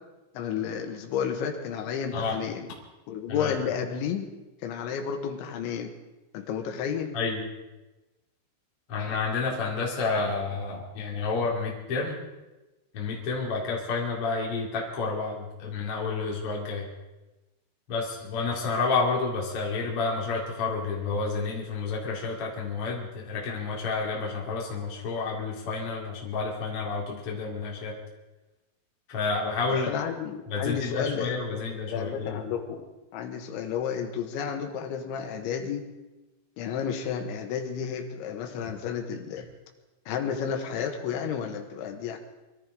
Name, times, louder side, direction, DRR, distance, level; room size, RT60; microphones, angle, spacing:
voice 1, 0.4-2.7 3.1-4.3 4.6-5.9 6.3-7.2 29.9-32.9 33.1-35.8 36.6-39.5 40.1-42.2, left 7 dB, 75° left, 4 dB, 3.6 m, -32 dB
voice 2, 7.1-7.5 8.9-12.2 12.9-16.9 17.9-28.0 29.1-29.9 30.5-32.4, left 4 dB, 40° left, -3 dB, 2.3 m, -30 dB
24.0 x 14.0 x 3.8 m, 1.1 s
omnidirectional pair, 5.8 m